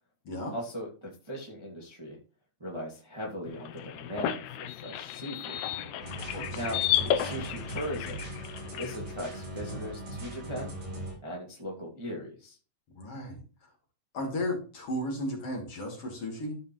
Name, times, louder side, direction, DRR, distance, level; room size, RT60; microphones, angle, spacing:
voice 1, 0.5-2.2 2.6-5.6 6.5-6.8 7.1-8.3 8.8-10.8 11.2-12.6, equal, 10° right, -3 dB, 1.4 m, -38 dB
sound 1, 3.5-9.0, left 11 dB, 75° left, 1.8 m, -33 dB
sound 2, 6.0-11.1, right 1 dB, 65° right, 6.1 m, -39 dB
voice 2, 6.2-6.6 12.9-13.4 14.1-16.6, left 1 dB, 50° left, 0 dB, 3.3 m, -35 dB
14.0 x 5.2 x 3.0 m, 0.37 s
omnidirectional pair, 3.6 m